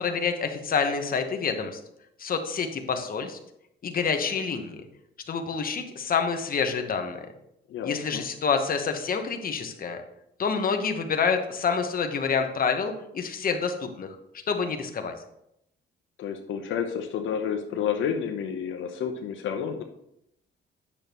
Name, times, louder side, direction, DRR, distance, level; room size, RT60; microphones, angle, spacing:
voice 1, 0.0-1.8 2.2-3.4 3.8-4.8 5.3-7.3 7.8-10.0 10.4-14.1 14.5-15.1, left 5 dB, 45° left, 5 dB, 1.1 m, -27 dB
voice 2, 7.7-8.2 16.2-19.8, left 7 dB, 80° left, 4 dB, 0.8 m, -30 dB
8.8 x 6.7 x 3.0 m, 0.77 s
cardioid pair, 90°, 20 cm